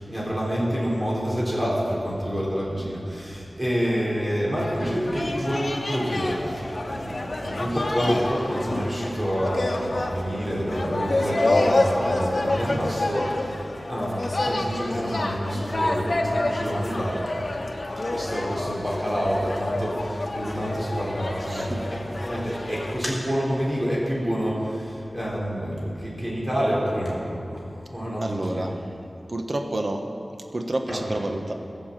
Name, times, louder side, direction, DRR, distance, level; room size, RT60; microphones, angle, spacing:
voice 1, 0.0-13.5 13.9-17.2 18.1-21.8 22.2-27.2 27.5-28.6 30.9-31.0, equal, 20° right, -6 dB, 4.1 m, -28 dB
sound 1, 4.5-23.0, left 2 dB, 55° left, 1.2 m, -28 dB
voice 2, 21.5-21.9 22.5-22.7 28.2-28.8 29.3-30.0 30.5-31.5, right 1 dB, 50° right, 4 dB, 1.2 m, -29 dB
16.0 x 7.2 x 7.5 m, 2.7 s
wide cardioid pair, 55°, 0 cm